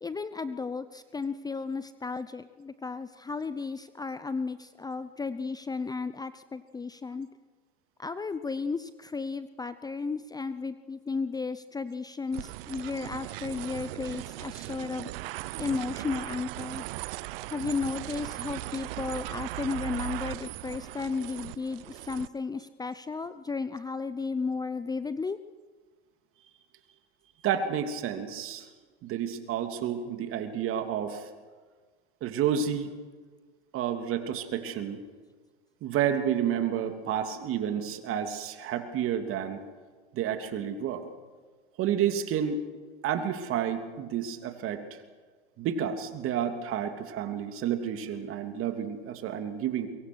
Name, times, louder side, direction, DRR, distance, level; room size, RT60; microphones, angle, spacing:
voice 1, 0.0-7.3 8.0-15.1 15.6-16.8 17.5-25.4, left 4 dB, 10° left, 13 dB, 0.7 m, -34 dB
sound 1, 12.3-22.3, right 17 dB, 65° right, 0.8 m, -38 dB
voice 2, 27.4-28.7 29.0-31.3 32.2-32.9 33.7-35.0 35.8-39.6 40.1-41.1 41.8-42.6 43.0-45.0 45.6-49.9, right 9 dB, 45° right, 7 dB, 3.0 m, -30 dB
23.5 x 23.0 x 6.3 m, 1.5 s
hypercardioid pair, 100°, 31 cm